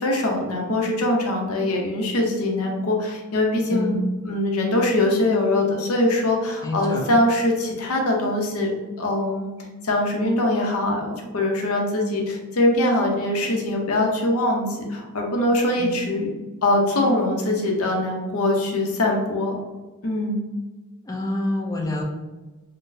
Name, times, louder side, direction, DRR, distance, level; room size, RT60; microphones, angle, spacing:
voice 1, 0.0-4.0 4.2-8.7 9.0-9.5 9.8-16.3 16.6-19.6 20.0-20.4, left 1 dB, 90° left, 1 dB, 0.6 m, -22 dB
voice 2, 6.6-7.0 15.8-16.0 21.1-22.0, left 1 dB, 15° left, 0 dB, 0.4 m, -27 dB
3.8 x 2.1 x 2.6 m, 1.2 s
head